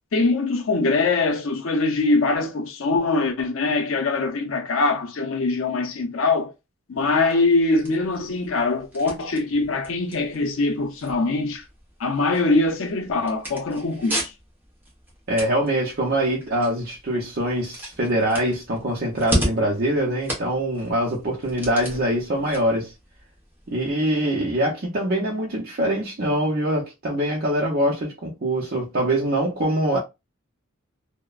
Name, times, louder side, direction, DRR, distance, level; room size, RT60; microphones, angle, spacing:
voice 1, 0.1-6.5 6.9-11.6 12.0-14.3, left 3 dB, 70° left, 0.6 m, -22 dB
sound 1, 7.0-23.9, equal, 10° right, 0.9 m, -35 dB
voice 2, 15.3-22.9 23.7-30.0, right 1 dB, 50° right, 0.6 m, -24 dB
2.9 x 2.1 x 2.3 m
head